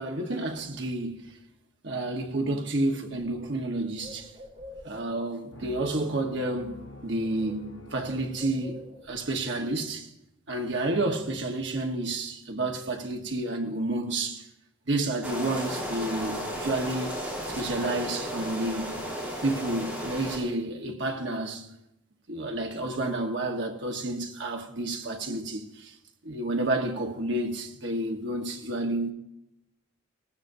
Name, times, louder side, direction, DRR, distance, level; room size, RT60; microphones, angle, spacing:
voice 1, 0.0-1.4 1.8-4.3 4.8-10.1 10.5-14.4 14.9-19.0 19.4-21.7 22.3-25.9 26.2-29.1, right 2 dB, 60° right, 1.2 m, -30 dB
Bird, 2.7-5.3 6.3-6.6 6.8-9.3, left 1 dB, 35° right, 3.5 m, -48 dB
sound 1, 5.5-9.1, left 1 dB, 75° left, 1.1 m, -47 dB
sound 2, 15.2-20.4, equal, 5° right, 5.3 m, -34 dB
18.5 x 15.5 x 2.7 m
head